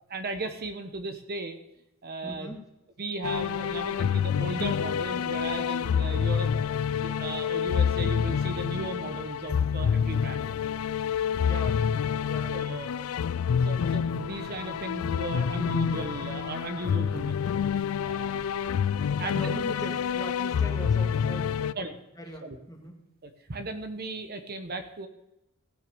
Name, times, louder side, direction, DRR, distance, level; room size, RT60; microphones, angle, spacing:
voice 1, 0.1-1.6 2.0-2.6 3.0-6.5 7.0-10.5 12.5-12.9 13.5-17.3 18.0-18.5 19.2-19.6 21.8-22.0 22.4-22.6 23.2-25.1, right 2 dB, 50° right, 8 dB, 1.0 m, -36 dB
voice 2, 2.2-2.6 11.4-11.8 12.2-12.7 19.2-23.0, equal, 15° left, 2 dB, 2.1 m, -41 dB
sound 1, 3.2-21.7, left 7 dB, 75° left, 0.3 m, -28 dB
15.0 x 6.6 x 6.7 m, 0.89 s
head